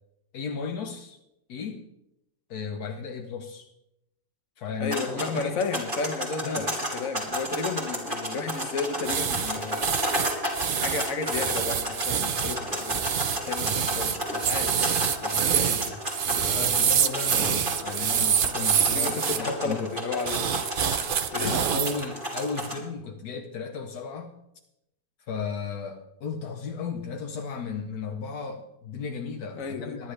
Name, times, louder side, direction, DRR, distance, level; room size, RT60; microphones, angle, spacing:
voice 1, 0.3-1.2 1.5-1.9 2.5-3.7 4.6-5.6 6.4-6.7 16.2-19.9 21.4-24.3 25.3-30.1, left 5 dB, 80° left, 4 dB, 1.4 m, -35 dB
voice 2, 4.8-9.8 10.7-14.8 15.2-16.0 18.9-20.7 21.3-21.5 29.5-30.0, left 4 dB, 60° left, 7 dB, 1.7 m, -33 dB
sound 1, 4.9-22.8, equal, 30° right, 3.2 m, -33 dB
sound 2, 9.0-19.4 20.2-22.0 22.4-22.7, right 8 dB, 55° right, 0.6 m, -26 dB
20.5 x 11.0 x 3.3 m, 0.86 s
omnidirectional pair, 1.6 m